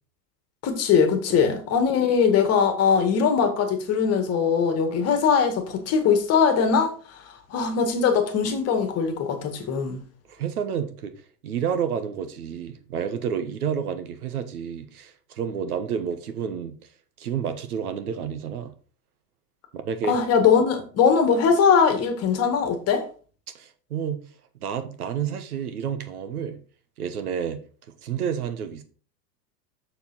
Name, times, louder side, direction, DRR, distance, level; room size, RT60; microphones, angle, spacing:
voice 1, 0.6-6.9 7.5-10.0 20.1-23.1, left 6 dB, 30° left, 1.8 m, -21 dB
voice 2, 10.3-11.1 11.4-16.7 17.2-18.7 19.7-20.2 23.5-24.2 24.6-26.6 27.0-27.6 28.0-28.8, right 8 dB, 65° right, 1.4 m, -30 dB
7.0 x 6.8 x 4.1 m
figure-of-eight pair, 100°, 48 cm